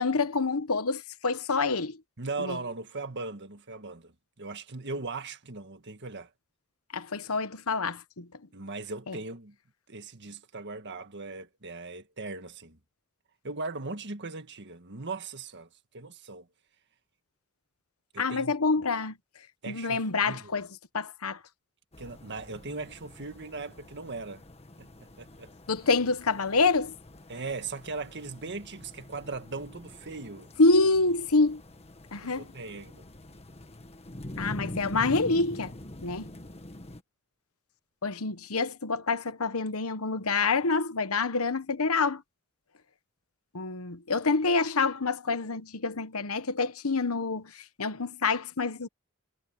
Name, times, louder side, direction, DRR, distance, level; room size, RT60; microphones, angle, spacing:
voice 1, 0.0-2.0 2.4-2.6 6.9-8.3 9.1-9.2 18.2-19.2 19.7-20.7 20.9-21.4 25.7-26.9 30.6-31.6 32.1-32.4 34.4-35.7 36.0-36.3 38.0-42.2 43.5-48.9, left 3 dB, 85° left, 1.2 m, -27 dB
voice 2, 2.2-6.3 8.5-9.6 9.9-12.8 13.4-16.5 18.1-18.5 19.6-20.6 22.0-24.4 24.8-25.5 27.3-30.5 32.2-33.1, right 3 dB, 55° right, 1.8 m, -39 dB
sound 1, 21.9-37.0, left 1 dB, 30° left, 1.5 m, -44 dB
head